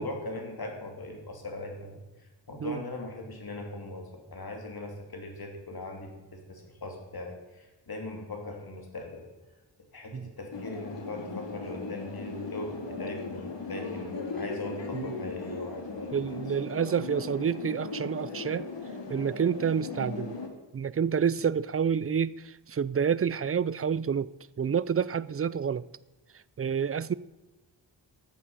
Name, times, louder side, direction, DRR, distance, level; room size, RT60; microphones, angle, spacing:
voice 1, 0.0-2.0 2.5-9.3 9.9-16.2, left 2 dB, 55° left, 3.2 m, -40 dB
sound 1, 10.5-20.5, left 3 dB, 75° left, 2.3 m, -38 dB
voice 2, 16.1-18.7 19.1-20.4 20.7-22.4 22.7-24.3 24.6-25.8 26.6-27.1, right 7 dB, 30° right, 0.5 m, -28 dB
14.0 x 8.5 x 5.7 m
wide cardioid pair, 80°, 44 cm